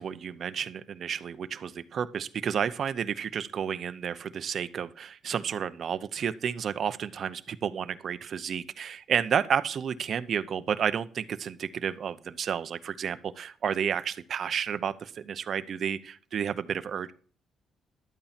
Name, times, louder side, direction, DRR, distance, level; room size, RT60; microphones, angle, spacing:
voice 1, 0.0-17.1, right 8 dB, 55° right, 12 dB, 0.8 m, -31 dB
12.0 x 8.9 x 4.3 m, 0.43 s
cardioid pair, 90°, 0 cm